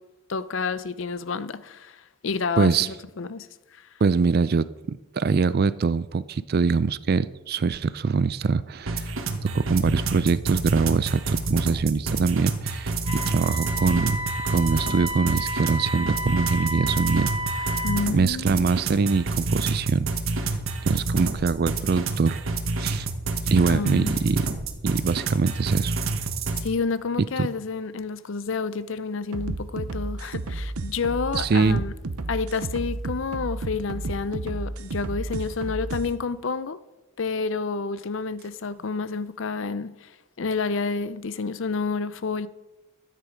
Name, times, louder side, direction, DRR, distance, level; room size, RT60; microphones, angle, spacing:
voice 1, 0.3-3.5 3.7-3.9 17.8-18.7 23.7-24.2 26.6-31.9 32.3-36.8 37.2-40.1 40.4-42.5, left 4 dB, 60° left, 0.5 m, -29 dB
voice 2, 2.6-2.9 4.0-9.1 9.4-14.2 14.5-17.3 17.6-17.8 18.1-20.1 20.8-22.4 22.8-23.1 23.5-24.5 24.8-26.0 27.2-27.3 31.4-31.8, right 4 dB, 45° right, 0.4 m, -23 dB
sound 1, 8.9-26.7, right 3 dB, 65° right, 1.1 m, -29 dB
Wind instrument woodwind instrument, 13.0-18.1, equal, 85° left, 1.7 m, -32 dB
sound 2, 29.3-36.1, right 2 dB, 80° right, 0.8 m, -32 dB
13.0 x 9.2 x 5.0 m
head